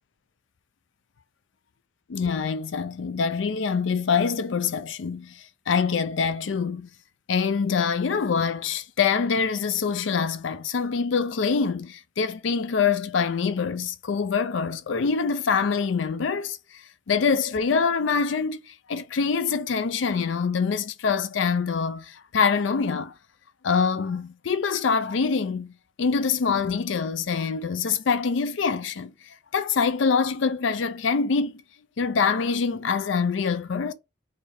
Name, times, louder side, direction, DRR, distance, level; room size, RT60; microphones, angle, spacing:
voice 1, 2.1-6.9 7.3-16.6 17.1-23.1 23.6-25.7 26.0-29.1 29.5-31.6 32.0-33.9, left 5 dB, 80° left, 0.5 m, -25 dB
4.1 x 2.7 x 3.3 m
head